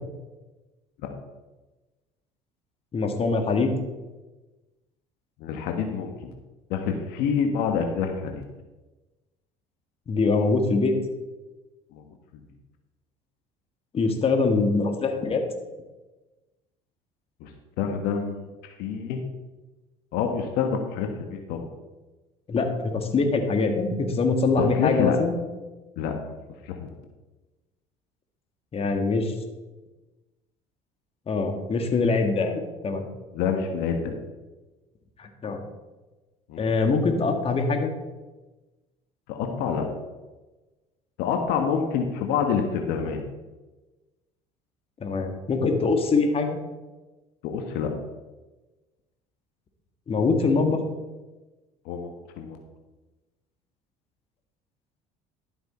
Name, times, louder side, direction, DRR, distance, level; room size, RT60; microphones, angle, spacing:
voice 1, 2.9-3.7 10.1-11.0 13.9-15.4 22.5-25.3 28.7-29.3 31.3-33.1 35.2-35.6 36.6-37.9 45.0-46.6 50.1-50.8, left 3 dB, 35° left, 5 dB, 1.8 m, -23 dB
voice 2, 5.4-6.3 6.7-8.4 11.9-12.0 17.4-17.5 17.8-19.2 20.1-21.6 24.6-25.2 26.0-26.1 26.6-26.9 33.3-34.1 36.5-36.7 39.3-39.8 41.2-43.2 47.4-47.9 51.8-52.6, left 6 dB, 70° left, 4 dB, 1.5 m, -27 dB
12.0 x 7.9 x 4.4 m, 1.1 s
supercardioid pair, 85°, 17 cm